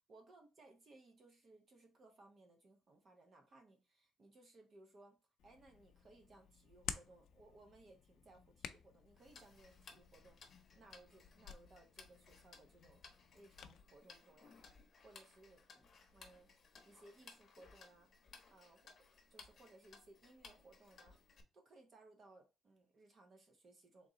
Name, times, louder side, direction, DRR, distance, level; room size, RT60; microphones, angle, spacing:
voice 1, 0.1-13.0 13.3-16.5 16.8-18.1 18.5-18.9 19.3-21.2 21.5-24.1, right 2 dB, 30° right, 0.6 m, -63 dB
Hands, 5.4-13.8, left 8 dB, 60° left, 0.4 m, -53 dB
Tick-tock, 9.2-21.4, left 5 dB, 30° left, 0.9 m, -62 dB
3.7 x 2.9 x 3.9 m
cardioid pair, 175°, 0 cm